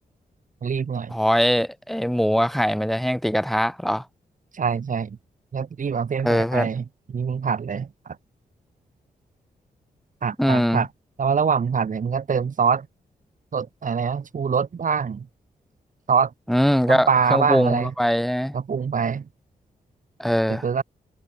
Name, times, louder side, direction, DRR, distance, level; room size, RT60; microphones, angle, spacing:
voice 1, 0.6-1.2 4.5-5.2 5.5-6.8 7.1-8.2 10.2-10.9 11.2-12.9 13.5-15.3 16.1-16.3 16.9-17.9 18.5-19.3 20.5-20.8, right 6 dB, 60° right, 4.6 m, -24 dB
voice 2, 1.1-4.0 6.2-6.7 10.4-10.9 16.5-18.5 20.2-20.6, equal, ahead, 3.3 m, -21 dB
cardioid pair, 90°, 15 cm